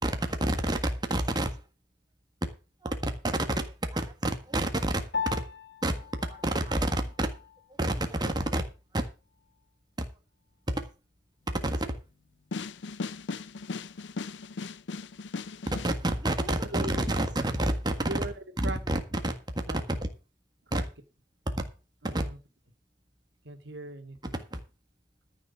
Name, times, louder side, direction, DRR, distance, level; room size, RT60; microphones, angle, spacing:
voice 1, 0.0-1.6 2.8-5.4 5.8-7.3 7.8-8.6 8.9-9.1 10.7-10.9 11.5-12.0 15.8-18.1 18.9-19.4 20.7-20.8 22.0-22.2 24.5-24.6, right 1 dB, 25° right, 1.6 m, -29 dB
Piano, 5.1-14.8, left 6 dB, 65° left, 1.5 m, -43 dB
sound 1, 12.5-15.9, left 4 dB, 85° left, 0.6 m, -37 dB
voice 2, 16.5-17.2 18.0-18.8 19.7-19.8 20.7-20.9 22.0-22.4 23.4-24.4, right 2 dB, 80° right, 2.0 m, -39 dB
14.0 x 6.2 x 6.9 m
head